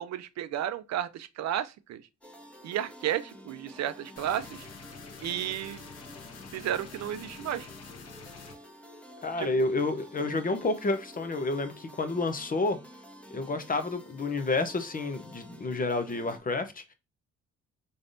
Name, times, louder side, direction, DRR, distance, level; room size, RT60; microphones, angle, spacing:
voice 1, 0.0-2.0 2.6-4.7 5.2-5.8 6.5-7.7 9.4-9.5, right 11 dB, 65° right, 0.5 m, -33 dB
sound 1, 2.2-16.4, equal, 5° left, 1.2 m, -49 dB
sound 2, 4.2-8.6, left 5 dB, 55° left, 1.0 m, -47 dB
voice 2, 9.2-12.8 13.3-16.9, left 3 dB, 30° left, 0.7 m, -30 dB
3.9 x 3.3 x 2.6 m
cardioid pair, 90°, 30 cm